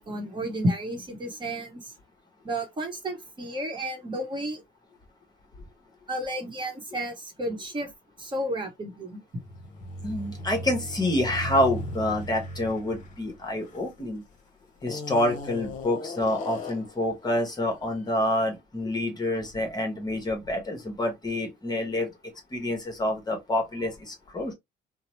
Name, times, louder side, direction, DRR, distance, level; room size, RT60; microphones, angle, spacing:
voice 1, 0.0-1.9 2.4-4.6 6.1-7.9 8.2-9.2, right 1 dB, 30° right, 1.0 m, -32 dB
sound 1, 9.4-14.2 14.8-17.0, left 1 dB, 50° left, 0.8 m, -37 dB
voice 2, 10.0-14.2 14.8-22.1 22.5-24.5, left 1 dB, 25° left, 0.9 m, -27 dB
2.8 x 2.0 x 3.0 m
cardioid pair, 110°, 17 cm